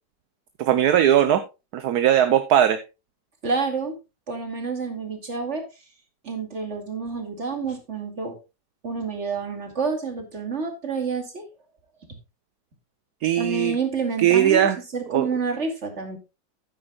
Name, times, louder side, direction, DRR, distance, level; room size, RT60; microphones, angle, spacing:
voice 1, 0.6-1.4 1.7-2.8 13.2-13.8 14.2-14.8 15.1-15.3, right 10 dB, 65° right, 11 dB, 1.2 m, -19 dB
voice 2, 3.4-4.0 4.3-5.6 6.2-8.3 8.8-11.4 13.4-14.7 14.9-16.2, right 4 dB, 40° right, 5 dB, 2.6 m, -28 dB
13.0 x 9.6 x 2.3 m, 0.27 s
omnidirectional pair, 1.9 m